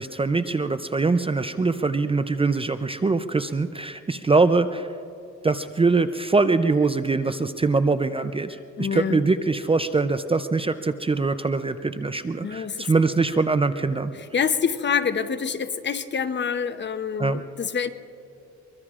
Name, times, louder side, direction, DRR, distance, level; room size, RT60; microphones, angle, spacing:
voice 1, 0.0-4.9 5.4-14.1 17.2-17.4, right 3 dB, 20° right, 11 dB, 0.5 m, -23 dB
voice 2, 8.8-9.2 12.4-12.9 14.1-17.9, left 6 dB, 35° left, 11 dB, 0.8 m, -26 dB
23.5 x 23.5 x 2.5 m, 2.5 s
cardioid pair, 90°, 30 cm